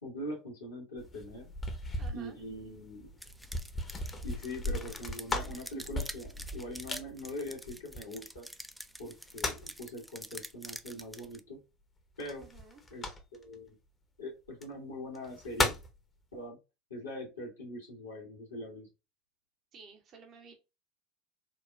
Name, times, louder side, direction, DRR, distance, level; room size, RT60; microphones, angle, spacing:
voice 1, 0.0-1.5 2.1-3.1 4.2-8.5 9.0-11.6 12.2-12.5 12.9-13.7 14.2-15.8 16.3-16.6 16.9-18.9, left 1 dB, 75° left, 1.4 m, -42 dB
sound 1, 1.0-8.4 9.0-9.8 12.2-13.5 14.5-14.6 15.1-16.0, left 2 dB, 25° left, 0.7 m, -37 dB
voice 2, 2.0-2.4 12.4-12.8 19.7-20.5, right 5 dB, 40° right, 0.6 m, -53 dB
sound 2, 3.2-11.4, equal, ahead, 0.3 m, -47 dB
4.4 x 2.2 x 2.3 m
figure-of-eight pair, 75°, 0 cm